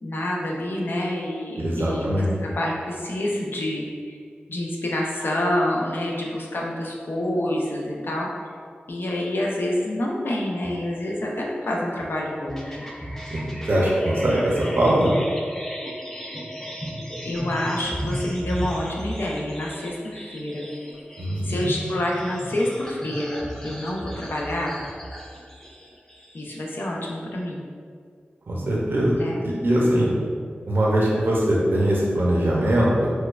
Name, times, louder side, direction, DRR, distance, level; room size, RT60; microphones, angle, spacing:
voice 1, 0.0-4.2 4.5-8.3 8.9-12.8 17.2-20.6 21.4-24.7 26.3-27.6 29.2-29.4, left 1 dB, 65° left, -3 dB, 0.6 m, -27 dB
voice 2, 1.6-2.3 13.3-15.1 21.2-21.7 28.5-30.1 30.7-33.1, right 1 dB, 65° right, -5 dB, 0.6 m, -22 dB
sound 1, 12.5-26.6, equal, 10° left, 0.5 m, -35 dB
4.4 x 2.3 x 2.3 m, 2.1 s
wide cardioid pair, 60°, 4 cm